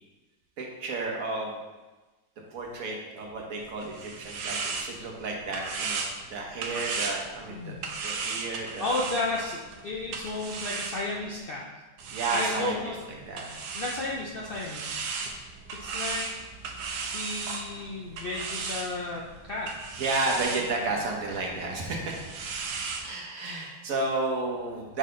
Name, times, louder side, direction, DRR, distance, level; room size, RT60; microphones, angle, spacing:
voice 1, 0.6-1.6 2.5-7.7 8.0-9.0 12.1-13.4 20.0-22.2 23.0-25.0, right 3 dB, 60° right, -1 dB, 1.3 m, -32 dB
sound 1, 3.6-11.4 12.0-23.1, right 4 dB, 85° right, 1.3 m, -36 dB
voice 2, 8.8-11.6 12.3-13.0 13.7-15.0 15.8-16.3 17.1-20.0, left 2 dB, 85° left, -3 dB, 0.4 m, -33 dB
6.5 x 4.0 x 3.7 m, 1.2 s
omnidirectional pair, 1.8 m